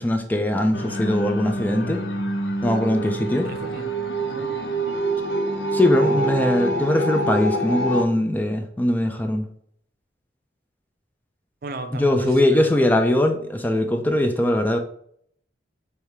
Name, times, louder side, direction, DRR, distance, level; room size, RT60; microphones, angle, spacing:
voice 1, 0.0-2.0 2.6-3.5 5.7-9.4 11.9-14.8, left 1 dB, 10° left, 5 dB, 0.3 m, -21 dB
sound 1, 0.7-8.0, right 1 dB, 85° left, 0.7 m, -26 dB
voice 2, 3.4-4.0 4.2-4.7 6.0-6.5 11.6-12.9, right 2 dB, 55° right, 7 dB, 0.5 m, -36 dB
3.3 x 3.2 x 4.8 m, 0.65 s
head